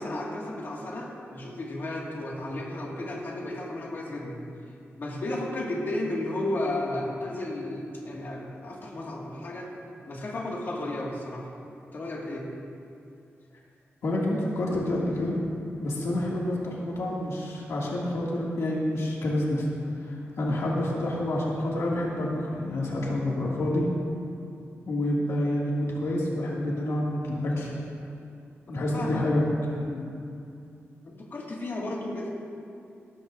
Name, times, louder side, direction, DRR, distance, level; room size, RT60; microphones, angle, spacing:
voice 1, 0.0-4.4 5.0-9.7 10.1-11.5 11.9-12.5 28.8-29.2 31.0-32.3, left 1 dB, 50° left, -3 dB, 1.9 m, -33 dB
voice 2, 14.0-15.4 15.8-19.7 20.0-23.9 24.9-27.7 28.7-30.1, left 1 dB, 80° left, -4 dB, 2.2 m, -28 dB
18.5 x 13.0 x 2.6 m, 2.6 s
wide cardioid pair, 165°, 5 cm